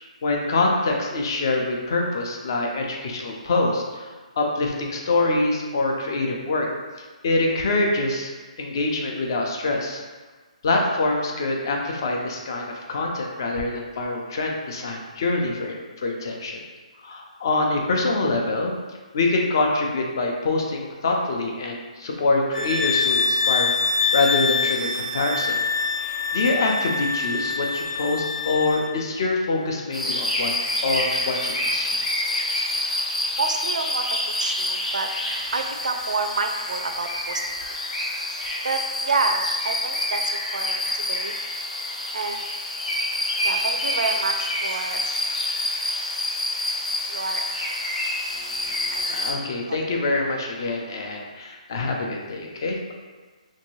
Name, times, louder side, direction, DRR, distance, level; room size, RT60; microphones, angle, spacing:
voice 1, 0.2-4.1 4.4-6.7 7.2-8.3 8.6-10.0 10.6-16.6 17.0-25.6 26.0-30.6 30.8-32.0 48.3-52.9, left 2 dB, 35° left, 1 dB, 0.4 m, -25 dB
sound 1, 22.5-28.9, left 5 dB, 60° left, 0.8 m, -25 dB
sound 2, 29.9-49.3, left 1 dB, 85° left, 0.9 m, -27 dB
voice 2, 33.4-35.1 35.5-37.7 38.3-41.3 42.1-42.4 43.4-45.0 47.1-47.4 48.9-49.2 49.7-49.8, right 4 dB, 80° right, 5 dB, 0.4 m, -29 dB
3.0 x 2.6 x 3.0 m, 1.3 s
hypercardioid pair, 175°, 4 cm